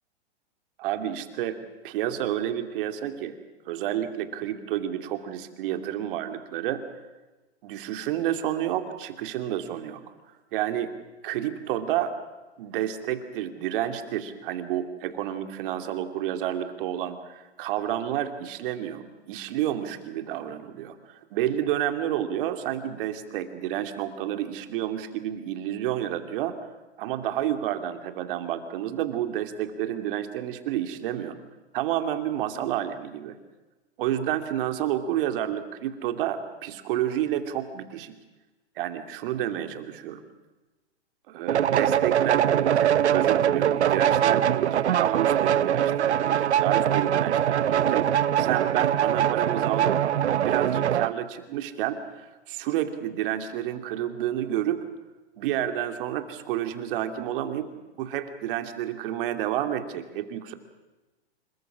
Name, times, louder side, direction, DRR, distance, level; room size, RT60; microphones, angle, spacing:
voice 1, 0.8-1.6 1.8-3.4 3.7-6.8 7.6-10.0 10.5-10.9 11.2-12.1 12.6-26.6 27.0-31.4 31.7-33.4 34.0-38.2 38.8-40.2 41.3-48.1 48.4-49.9 50.4-54.8 55.4-57.7 58.0-60.5, right 11 dB, 55° right, 7 dB, 2.6 m, -30 dB
sound 1, 41.5-51.1, right 10 dB, 85° right, 0.8 m, -23 dB
26.0 x 22.5 x 6.2 m, 1.2 s
hypercardioid pair, 120°, 33 cm